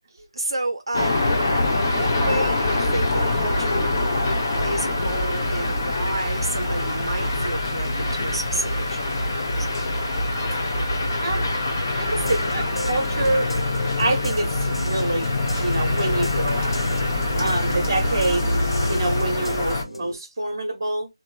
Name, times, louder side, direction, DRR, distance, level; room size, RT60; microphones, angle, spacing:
voice 1, 0.4-1.3 1.9-3.9 4.6-9.8 17.3-17.9, right 2 dB, 65° right, 0.5 m, -31 dB
sound 1, 0.9-19.8, left 2 dB, 25° left, 0.5 m, -24 dB
voice 2, 11.2-11.5 11.9-13.5 14.0-15.3 15.6-16.8 17.4-18.5 18.9-21.1, right 2 dB, 35° right, 0.9 m, -26 dB
sound 2, 12.1-20.1, left 1 dB, 70° left, 0.9 m, -34 dB
2.9 x 2.0 x 2.2 m
figure-of-eight pair, 165°, 3 cm